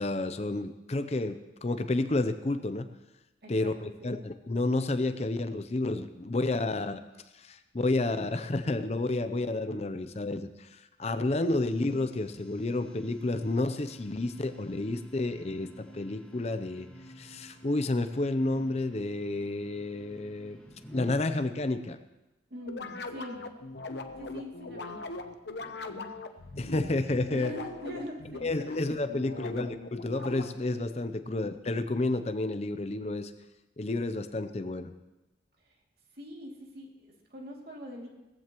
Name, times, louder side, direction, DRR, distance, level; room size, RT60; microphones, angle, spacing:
voice 1, 0.0-2.9 3.5-7.0 7.3-16.9 17.2-20.6 20.9-22.0 26.6-27.5 28.4-33.3 33.8-34.9, left 2 dB, 35° left, 10 dB, 0.6 m, -30 dB
voice 2, 3.4-4.2 22.5-23.4 24.2-25.0 25.6-26.2 27.2-28.7 29.1-29.6 31.1-31.5 36.1-38.1, equal, 55° right, -1 dB, 2.6 m, -43 dB
sound 1, 11.4-21.1, right 1 dB, 5° left, 1.5 m, -50 dB
sound 2, 22.6-30.8, left 2 dB, 65° left, 0.8 m, -40 dB
20.0 x 15.0 x 3.0 m, 1.0 s
head